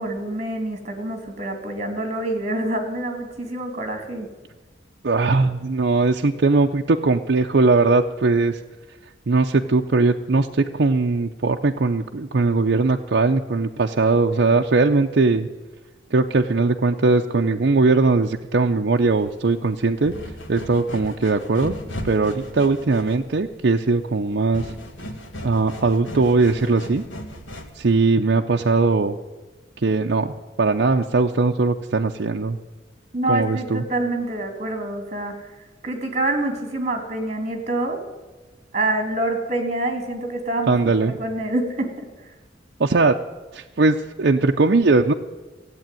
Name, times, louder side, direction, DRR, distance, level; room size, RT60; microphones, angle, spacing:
voice 1, 0.0-4.3 33.1-35.3 35.8-38.0 38.7-42.3, right 1 dB, 40° right, 5 dB, 2.8 m, -26 dB
voice 2, 5.0-8.6 9.3-15.5 16.1-20.1 20.5-21.7 22.0-24.7 25.4-27.0 27.8-29.2 29.8-32.6 33.3-33.8 40.7-41.1 42.8-43.2 43.5-45.1, right 3 dB, 60° right, 2 dB, 0.6 m, -20 dB
sound 1, 19.0-27.9, equal, 80° left, 2.0 m, -37 dB
15.5 x 8.4 x 9.0 m, 1.3 s
head